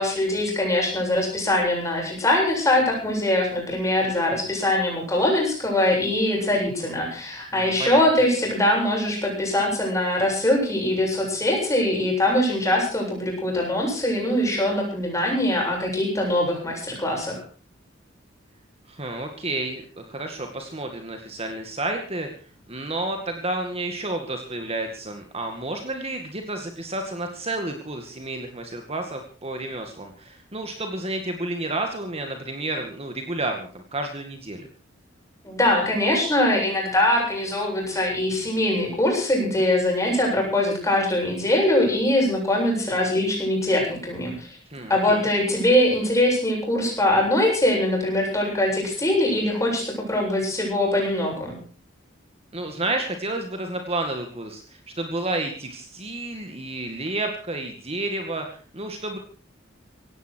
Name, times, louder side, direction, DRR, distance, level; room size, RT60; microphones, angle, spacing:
voice 1, 0.0-17.4 35.4-44.5 44.9-51.6, left 1 dB, 15° left, 0 dB, 7.8 m, -22 dB
voice 2, 7.5-8.1 18.9-22.3 22.7-34.7 44.7-45.3 52.5-59.2, right 2 dB, 30° right, 4 dB, 2.2 m, -31 dB
18.0 x 16.0 x 4.7 m, 0.39 s
head